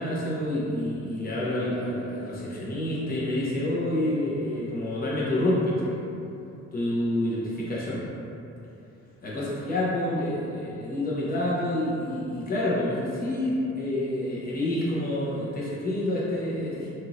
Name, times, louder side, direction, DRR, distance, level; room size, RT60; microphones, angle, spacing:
voice 1, 0.0-6.0 6.7-8.0 9.2-16.9, left 1 dB, 30° left, -7 dB, 0.9 m, -28 dB
4.3 x 3.0 x 2.6 m, 2.8 s
cardioid pair, 150°, 29 cm